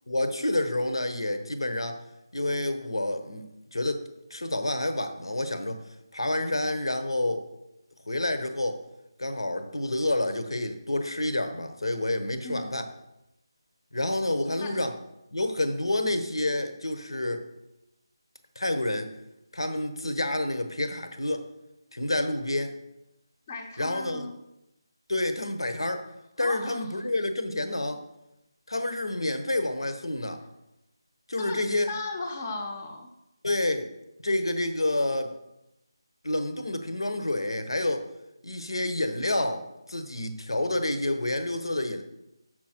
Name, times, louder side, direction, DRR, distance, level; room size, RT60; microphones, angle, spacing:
voice 1, 0.1-2.0 2.3-3.5 3.7-4.0 4.3-5.8 6.1-7.4 8.1-8.8 9.2-12.9 13.9-14.9 15.3-17.4 18.5-19.1 19.5-21.5 21.9-22.7 23.8-24.3 25.1-26.1 26.4-28.0 28.7-30.4 31.3-31.9 33.4-33.9 34.2-35.3 36.2-38.1 38.4-42.0, left 1 dB, 75° left, 8 dB, 1.0 m, -28 dB
voice 2, 12.4-12.8 14.5-14.9 23.5-24.4 26.4-26.9 31.4-33.1, left 3 dB, 30° left, 1 dB, 0.7 m, -36 dB
7.1 x 6.2 x 4.4 m, 0.89 s
figure-of-eight pair, 160°, 3 cm